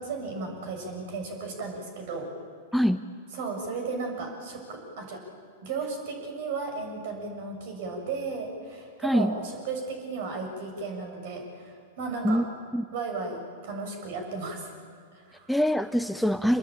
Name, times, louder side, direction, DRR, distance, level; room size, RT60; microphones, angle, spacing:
voice 1, 0.0-2.3 3.3-5.2 5.6-12.4 12.9-14.7 15.1-15.5, right 4 dB, 50° right, 3 dB, 6.8 m, -35 dB
voice 2, 9.0-9.3 12.2-12.4 12.7-12.9 15.5-16.6, equal, ahead, 11 dB, 0.6 m, -24 dB
27.5 x 21.5 x 9.0 m, 2.1 s
figure-of-eight pair, 95°, 0 cm